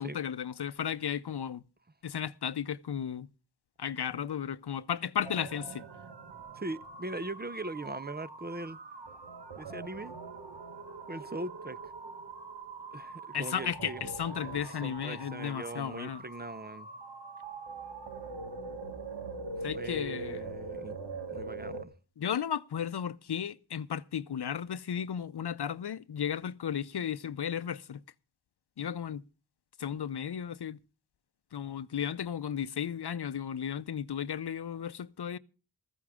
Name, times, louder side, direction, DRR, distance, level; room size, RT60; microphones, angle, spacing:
voice 1, 0.0-1.6 2.0-3.3 3.8-5.8 13.3-16.2 19.6-20.4 22.2-28.0 28.8-29.2 29.8-30.8 31.5-35.4, left 8 dB, 70° left, 0.6 m, -34 dB
sound 1, 5.2-21.8, right 3 dB, 90° right, 1.5 m, -43 dB
voice 2, 6.5-8.8 9.6-10.1 11.1-11.9 12.9-14.1 14.5-16.9 19.6-21.0 21.3-21.9, right 2 dB, 25° right, 0.6 m, -40 dB
14.5 x 14.5 x 3.6 m
wide cardioid pair, 55°, 41 cm